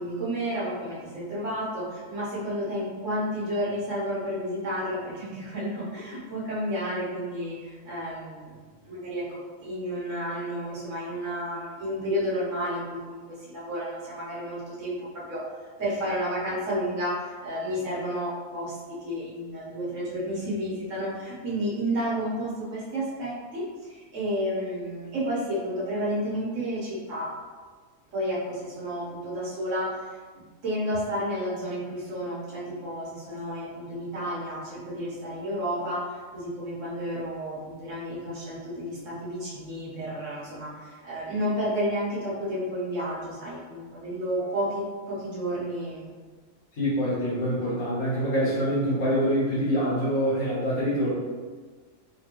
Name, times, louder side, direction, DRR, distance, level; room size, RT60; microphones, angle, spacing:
voice 1, 0.0-8.6 8.8-15.4 15.8-27.3 28.1-30.2 30.6-46.1, equal, 75° right, -7 dB, 1.5 m, -31 dB
voice 2, 46.7-51.1, equal, 80° left, -8 dB, 1.7 m, -25 dB
3.9 x 3.0 x 2.9 m, 1.5 s
omnidirectional pair, 1.3 m